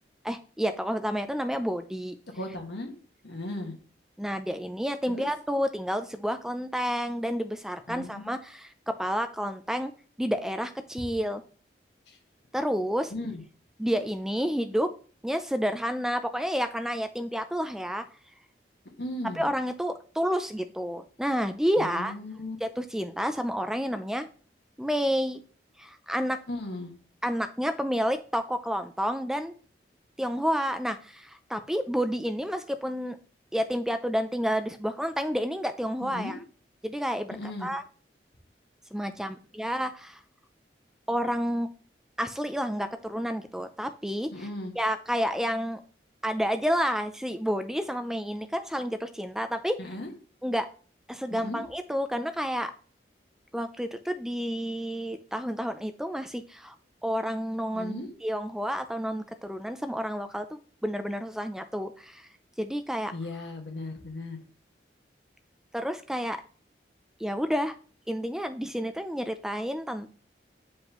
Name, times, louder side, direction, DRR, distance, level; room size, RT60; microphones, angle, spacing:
voice 1, 0.2-2.2 4.2-9.9 10.2-11.4 12.5-13.1 13.8-14.9 15.2-18.0 19.4-22.1 22.6-24.3 24.8-25.4 25.8-26.4 27.2-29.5 30.2-33.2 33.5-36.4 36.8-37.8 38.9-40.2 41.1-41.7 42.2-44.5 44.8-45.8 46.2-49.8 50.4-50.7 51.1-52.7 53.5-56.8 57.0-62.3 62.6-63.1 65.7-66.4 67.2-67.8 68.1-70.1, equal, 5° right, 9 dB, 0.4 m, -30 dB
voice 2, 2.3-2.9 3.2-3.8 5.1-5.3 7.9-8.3 12.1-12.2 13.1-13.4 19.0-19.4 21.8-22.6 26.5-26.9 36.0-36.4 37.3-37.7 44.3-44.7 49.8-50.1 51.3-51.6 57.7-58.1 63.1-64.4, left 1 dB, 80° left, 3 dB, 1.6 m, -36 dB
9.0 x 5.3 x 3.0 m, 0.41 s
head